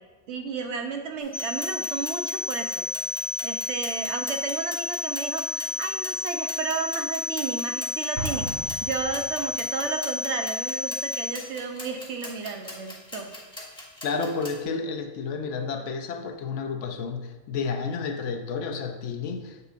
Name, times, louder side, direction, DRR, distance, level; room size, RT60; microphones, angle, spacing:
voice 1, 0.3-2.8 3.4-13.3, right 5 dB, 70° right, 0.9 m, -33 dB
sound 1, 1.2-14.6, left 1 dB, 5° left, 1.1 m, -42 dB
sound 2, 1.3-11.3, left 3 dB, 45° left, 1.3 m, -32 dB
Explosion, 8.2-9.7, right 2 dB, 55° right, 1.9 m, -36 dB
voice 2, 14.0-19.6, left 5 dB, 75° left, 0.9 m, -31 dB
6.9 x 6.7 x 2.4 m
omnidirectional pair, 1.3 m